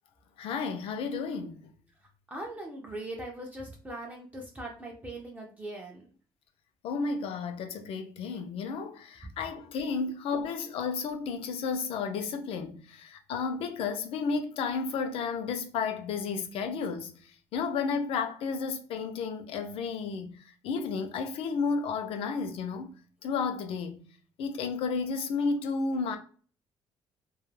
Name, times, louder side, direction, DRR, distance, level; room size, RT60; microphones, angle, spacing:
voice 1, 0.4-1.7 6.8-17.1 17.5-20.4 20.6-22.9 23.2-24.0 24.4-26.2, left 5 dB, 65° left, 0.5 m, -32 dB
voice 2, 2.3-6.1 9.2-9.3, right 1 dB, 15° right, 0.4 m, -40 dB
2.2 x 2.0 x 3.1 m
cardioid pair, 160°, 10 cm